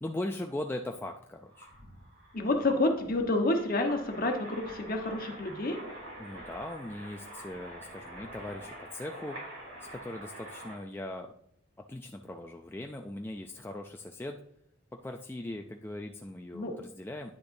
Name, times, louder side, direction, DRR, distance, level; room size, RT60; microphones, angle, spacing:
voice 1, 0.0-1.7 6.2-9.4 9.8-11.3 11.9-14.4 15.0-17.3, left 1 dB, 10° left, 3 dB, 0.3 m, -39 dB
sound 1, 1.5-10.8, right 1 dB, 80° right, 3.2 m, -46 dB
voice 2, 2.3-5.8 16.5-16.7, left 2 dB, 45° left, 3 dB, 1.2 m, -29 dB
9.8 x 6.6 x 2.6 m, 0.70 s
head